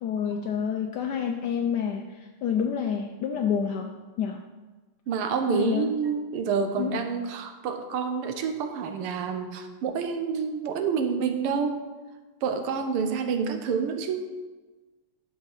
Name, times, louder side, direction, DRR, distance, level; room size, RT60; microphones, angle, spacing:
voice 1, 0.0-4.4 5.5-5.9 6.8-7.0, left 7 dB, 85° left, 4 dB, 0.9 m, -28 dB
voice 2, 5.1-11.8 12.4-14.3, right 6 dB, 90° right, 7 dB, 1.7 m, -28 dB
12.5 x 4.8 x 4.0 m, 1.3 s
omnidirectional pair, 2.4 m